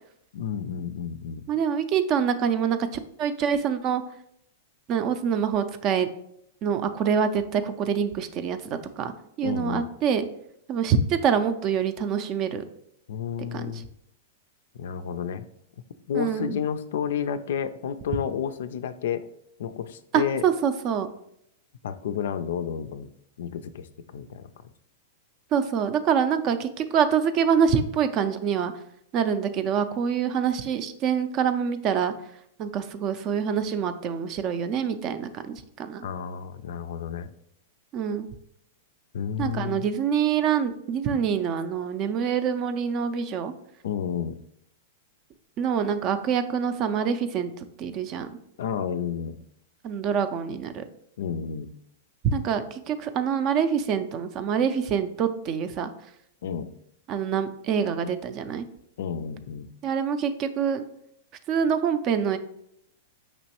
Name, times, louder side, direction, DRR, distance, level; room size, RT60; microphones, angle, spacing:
voice 1, 0.3-1.4 9.4-9.9 13.1-13.9 14.7-15.5 16.1-19.3 19.6-20.4 21.8-23.1 23.4-23.9 24.1-24.5 36.0-37.3 39.1-39.9 43.8-44.4 48.6-49.4 51.2-51.7 56.4-56.7 59.0-59.7, left 8 dB, 75° left, 11 dB, 0.3 m, -31 dB
voice 2, 1.5-4.0 4.9-6.1 6.6-8.6 9.0-9.1 9.4-10.2 10.7-12.6 13.5-13.7 16.1-16.5 20.1-21.1 25.5-28.7 29.1-32.1 32.6-36.0 37.9-38.3 39.4-43.5 45.6-48.3 49.8-50.8 52.3-55.9 57.1-58.7 59.8-60.8 61.5-62.4, right 7 dB, 40° right, 10 dB, 0.4 m, -25 dB
5.2 x 3.0 x 2.9 m, 0.74 s
hypercardioid pair, 130°, 0 cm